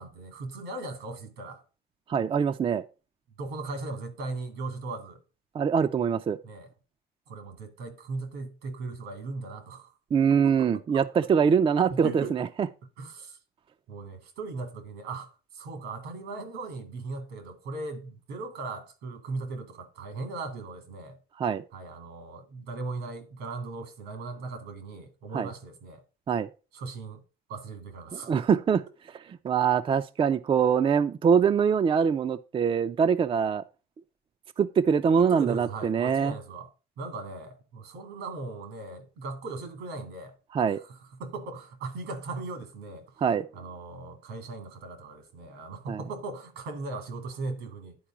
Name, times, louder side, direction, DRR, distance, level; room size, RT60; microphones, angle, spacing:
voice 1, 0.0-1.6 3.4-5.2 6.4-6.7 7.3-9.9 10.3-11.1 11.9-12.4 13.0-13.4 13.9-21.2 21.7-26.0 26.7-27.2 27.5-28.3 35.1-36.7 37.0-40.4 40.7-43.2 43.5-48.0, right 3 dB, 85° right, 2.3 m, -38 dB
voice 2, 2.1-2.8 5.5-6.4 10.1-12.7 21.4-21.6 25.3-25.5 26.3-26.5 28.1-28.8 29.3-33.6 34.6-36.3 40.5-40.8 43.2-43.5 45.9-46.0, right 7 dB, 30° right, 0.5 m, -24 dB
10.5 x 4.6 x 5.9 m
cardioid pair, 110°, 17 cm